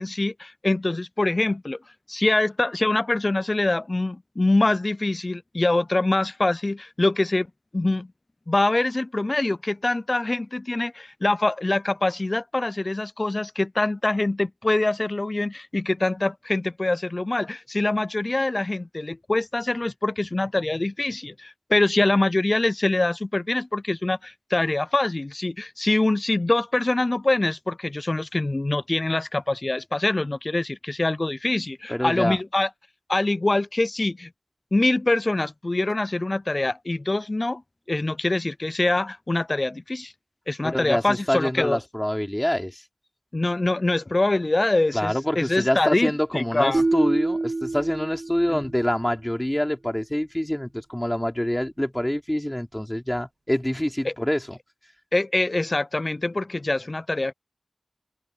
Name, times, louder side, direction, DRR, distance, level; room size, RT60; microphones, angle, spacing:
voice 1, 0.0-1.8 2.1-7.5 7.7-8.1 8.5-32.7 33.1-34.3 34.7-37.6 37.9-40.1 40.5-41.8 43.3-46.8 48.5-48.6 54.0-54.1 55.1-57.3, left 2 dB, 45° left, 0.3 m, -24 dB
voice 2, 31.9-32.4 40.6-42.8 44.9-54.6, left 1 dB, 15° left, 3.6 m, -26 dB
sound 1, 46.7-48.9, right 2 dB, 60° right, 0.8 m, -26 dB
open air
wide cardioid pair, 55°, 0 cm